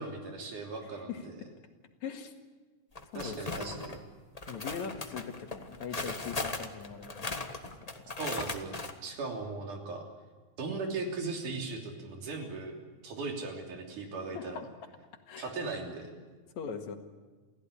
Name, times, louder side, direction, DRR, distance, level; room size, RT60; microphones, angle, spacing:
voice 1, 0.0-1.4 3.1-4.0 8.2-8.7 9.0-10.1 10.6-12.7 13.0-14.6 15.4-16.1, right 3 dB, 90° right, 2 dB, 4.7 m, -38 dB
voice 2, 2.0-2.3 3.1-3.9 4.5-7.4 7.8-7.9 14.3-14.7 15.3-15.5 16.6-17.0, left 6 dB, 70° left, 5 dB, 3.1 m, -41 dB
sound 1, 2.9-4.0 4.4-8.9, left 3 dB, 50° left, 0.4 m, -38 dB
28.5 x 16.0 x 9.9 m, 1.4 s
omnidirectional pair, 3.5 m